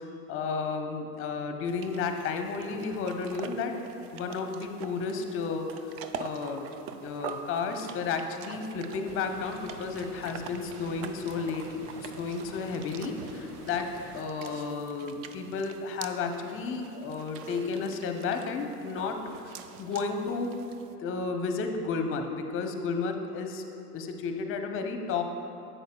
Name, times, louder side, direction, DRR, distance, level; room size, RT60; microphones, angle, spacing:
voice 1, 0.3-3.7 4.1-5.7 6.2-6.7 7.0-13.9 14.1-19.2 19.8-20.6 21.0-23.6 23.9-25.2, left 4 dB, 30° left, 5 dB, 0.6 m, -32 dB
sound 1, 1.6-20.9, right 7 dB, 45° right, 0.4 m, -45 dB
sound 2, 9.0-14.2, right 1 dB, 75° right, 1.5 m, -47 dB
10.5 x 7.9 x 2.2 m, 2.8 s
hypercardioid pair, 95°, 46 cm